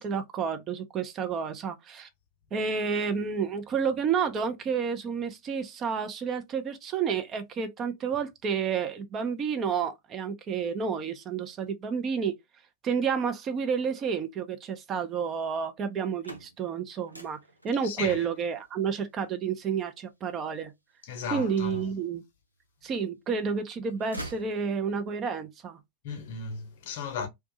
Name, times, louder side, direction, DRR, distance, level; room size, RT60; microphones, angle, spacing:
voice 1, 0.0-2.1 2.5-12.4 12.8-17.4 17.6-20.7 21.3-22.2 22.8-25.8, right 6 dB, 30° right, 0.5 m, -30 dB
sound 1, 15.9-21.9 22.4-23.3 23.6-25.2, right 1 dB, 90° right, 0.5 m, -47 dB
voice 2, 17.8-18.2 21.0-21.9 26.0-27.3, left 5 dB, 55° left, 0.7 m, -35 dB
2.5 x 2.2 x 2.7 m
figure-of-eight pair, 90°, 0 cm